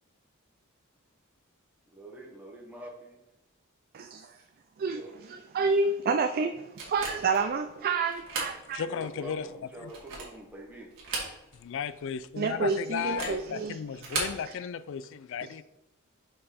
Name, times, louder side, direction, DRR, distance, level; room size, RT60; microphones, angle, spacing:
voice 1, 1.9-3.2 4.9-5.2 8.9-10.9 12.5-12.8 13.2-13.3, right 1 dB, 10° right, -3 dB, 1.1 m, -46 dB
voice 2, 3.9-4.3 4.8-8.8 12.4-13.8, right 4 dB, 45° right, 6 dB, 0.4 m, -29 dB
sound 1, 6.8-7.4 8.1-8.6 9.0-9.1 9.8-10.4 10.9-11.7 12.0-12.1 13.0-13.4 13.9-14.4, right 3 dB, 65° right, 1.7 m, -35 dB
voice 3, 8.7-9.5 9.8-9.9 11.5-15.6, left 7 dB, 65° left, 15 dB, 0.3 m, -35 dB
5.2 x 4.4 x 4.2 m, 0.91 s
head